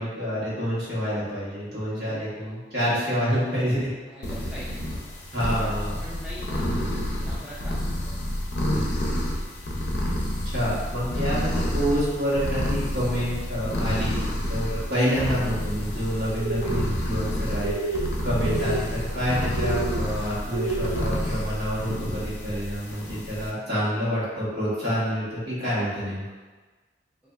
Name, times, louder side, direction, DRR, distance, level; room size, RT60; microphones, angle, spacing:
voice 1, 0.0-3.9 5.3-5.9 10.5-14.2 14.5-26.2, equal, 60° right, -10 dB, 1.3 m, -27 dB
voice 2, 2.1-2.5 4.0-5.7 6.0-6.9 7.2-8.2 18.2-18.4, equal, 5° right, -9 dB, 0.3 m, -43 dB
sound 1, 4.2-23.5, left 1 dB, 60° left, 0.5 m, -29 dB
sound 2, 16.4-16.9 17.6-18.1 18.3-18.8 19.5-20.0 20.5-21.0, right 3 dB, 85° right, 0.3 m, -29 dB
3.1 x 2.6 x 2.3 m, 1.3 s
head